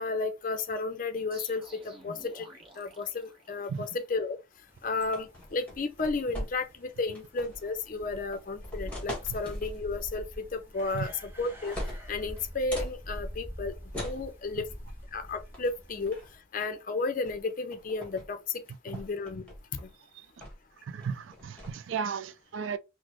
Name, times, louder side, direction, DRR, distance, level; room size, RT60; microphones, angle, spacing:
voice 1, 0.0-2.5 2.8-4.4 4.8-11.8 12.1-13.8 14.0-14.7 15.1-16.2 16.5-19.4 19.8-19.9, left 3 dB, 40° left, 0.5 m, -33 dB
sound 1, 1.3-4.1, equal, 25° right, 0.9 m, -51 dB
sound 2, 4.7-16.4, equal, 10° right, 0.6 m, -45 dB
sound 3, 5.0-6.8 7.1-7.7 8.3-9.7 10.8-11.2 11.4-13.0 13.9-14.3 15.5-15.7 16.1-16.4 17.3-17.4 17.7-18.3 18.6-19.9 20.4-20.7 21.0-21.7, left 1 dB, 5° left, 1.3 m, -41 dB
voice 2, 20.9-22.8, right 6 dB, 70° right, 0.4 m, -34 dB
4.0 x 2.0 x 2.9 m
head